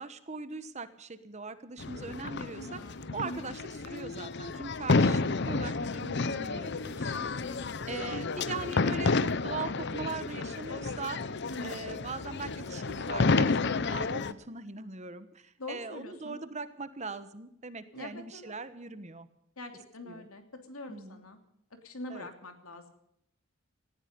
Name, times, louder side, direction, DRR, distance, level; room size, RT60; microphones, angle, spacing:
voice 1, 0.0-2.8 3.1-7.3 7.9-11.2 11.6-19.3 20.1-20.3 20.9-21.2 22.1-22.3, right 4 dB, 30° right, 12 dB, 1.2 m, -40 dB
sound 1, 1.8-14.3, left 3 dB, 55° left, 0.7 m, -30 dB
voice 2, 2.5-3.4 7.5-8.0 11.5-12.0 15.6-16.3 17.9-18.5 19.6-21.4 21.8-22.9, left 1 dB, 85° left, 6 dB, 3.0 m, -44 dB
18.5 x 14.5 x 5.3 m, 0.77 s
head